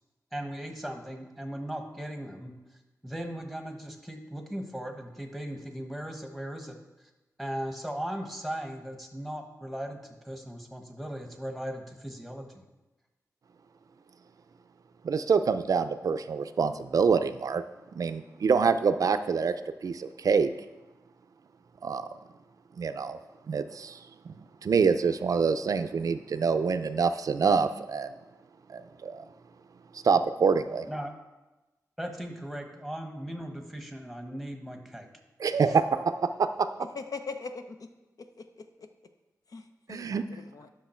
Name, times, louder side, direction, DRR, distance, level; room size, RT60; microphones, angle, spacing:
voice 1, 0.3-2.5 3.0-6.8 7.4-12.6 30.9-31.1 32.0-35.1, equal, ahead, 4 dB, 1.1 m, -38 dB
voice 2, 15.0-17.6 18.0-19.5 19.8-20.5 21.8-22.1 22.8-23.2 23.5-24.0 24.3-24.4 24.6-28.1 28.7-29.2 29.9-30.9 35.4-36.7 39.9-40.2, right 5 dB, 65° right, 10 dB, 0.4 m, -26 dB
voice 3, 36.8-37.9 38.2-38.9 39.5-40.7, left 4 dB, 65° left, 7 dB, 0.7 m, -41 dB
10.5 x 6.3 x 4.4 m, 1.1 s
wide cardioid pair, 115°, 6 cm